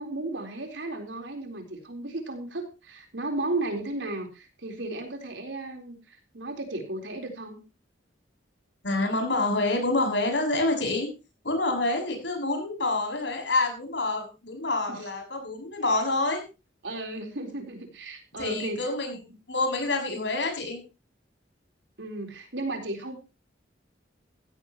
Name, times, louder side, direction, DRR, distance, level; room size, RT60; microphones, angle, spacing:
voice 1, 0.0-7.6 14.9-15.0 16.8-18.9 22.0-23.2, right 2 dB, 80° right, 4 dB, 3.9 m, -34 dB
voice 2, 8.8-11.1 11.4-16.4 18.4-19.2 19.5-20.8, left 2 dB, 75° left, 3 dB, 6.7 m, -27 dB
16.0 x 16.0 x 3.0 m, 0.31 s
head